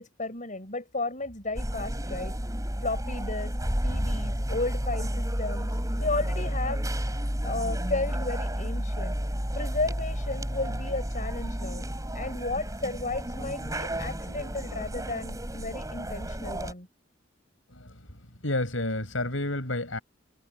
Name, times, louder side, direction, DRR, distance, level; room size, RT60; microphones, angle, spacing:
voice 1, 0.0-2.3 2.8-3.5 3.8-6.8 7.1-7.2 7.4-9.2 9.5-11.8 12.1-16.9, left 2 dB, 40° left, 7.5 m, -33 dB
sound 1, 1.6-16.7, equal, 15° right, 7.4 m, -31 dB
voice 2, 18.4-20.0, left 1 dB, 80° left, 8.0 m, -30 dB
head